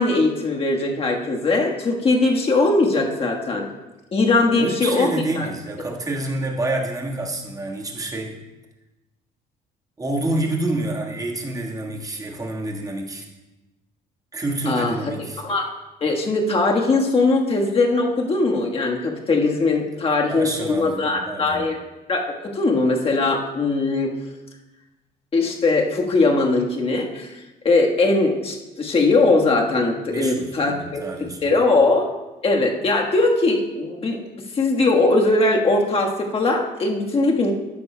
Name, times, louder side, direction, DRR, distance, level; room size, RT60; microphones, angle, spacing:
voice 1, 0.0-3.7 4.1-5.1 5.3-5.5 14.7-14.9 15.4-15.7 16.0-21.8 22.1-24.1 25.3-27.3 27.6-32.1 32.4-34.2 34.5-37.5, left 3 dB, 35° left, 1 dB, 1.4 m, -20 dB
voice 2, 4.5-8.4 10.0-13.3 14.3-15.4 20.3-21.7 30.1-31.6, right 2 dB, 20° right, 0 dB, 1.5 m, -28 dB
13.5 x 9.3 x 2.2 m, 1.0 s
cardioid pair, 110°, 17 cm